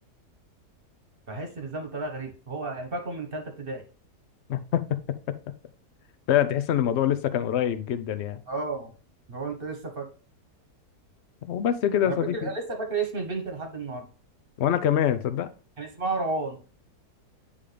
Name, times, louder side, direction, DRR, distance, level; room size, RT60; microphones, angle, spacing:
voice 1, 1.3-3.8 8.5-8.9 9.3-10.1 12.1-12.2 12.4-14.1 15.8-16.6, right 3 dB, 35° right, 1.3 m, -32 dB
voice 2, 4.5-4.8 6.3-8.4 11.4-12.5 14.6-15.5, left 10 dB, 65° left, 0.7 m, -25 dB
9.9 x 3.6 x 3.3 m
omnidirectional pair, 1.8 m